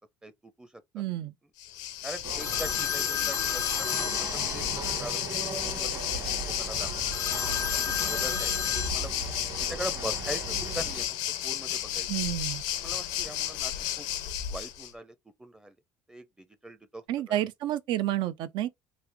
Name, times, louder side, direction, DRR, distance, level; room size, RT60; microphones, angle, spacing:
voice 1, 0.2-0.8 2.0-5.2 5.6-7.1 7.6-8.5 8.9-9.1 9.6-11.0 11.4-12.1 12.7-14.1 14.5-15.8 16.1-17.5, right 1 dB, 10° right, 0.5 m, -42 dB
voice 2, 0.9-1.3 12.1-12.6 17.1-18.7, right 13 dB, 70° right, 0.4 m, -30 dB
Waves surf, 1.6-14.9, left 11 dB, 85° left, 0.6 m, -32 dB
sound 1, 2.2-11.1, right 3 dB, 50° right, 1.6 m, -38 dB
sound 2, 2.4-4.9 7.1-8.9, left 9 dB, 40° left, 0.4 m, -32 dB
3.3 x 2.4 x 3.3 m
supercardioid pair, 85°, 8 cm